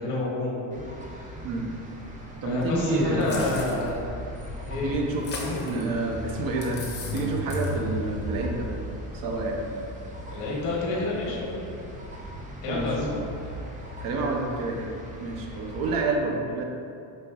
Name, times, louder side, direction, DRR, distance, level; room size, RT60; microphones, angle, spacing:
voice 1, 0.0-1.4 2.4-4.1 4.7-5.8 10.3-11.7 12.6-13.1, left 2 dB, 90° left, -4 dB, 1.1 m, -30 dB
sound 1, 0.7-16.0, left 1 dB, 20° right, 0.4 m, -37 dB
voice 2, 2.4-3.7 4.8-5.2 5.6-6.8 7.1-8.7 9.1-9.7 12.7-13.3 14.0-14.9 15.2-16.6, right 3 dB, 55° right, 1 dB, 0.7 m, -28 dB
sound 2, 3.2-3.9 5.1-5.8 6.6-7.2 7.5-7.7, left 3 dB, 25° left, 0.7 m, -36 dB
5.3 x 2.9 x 2.3 m, 2.5 s
cardioid pair, 115°, 42 cm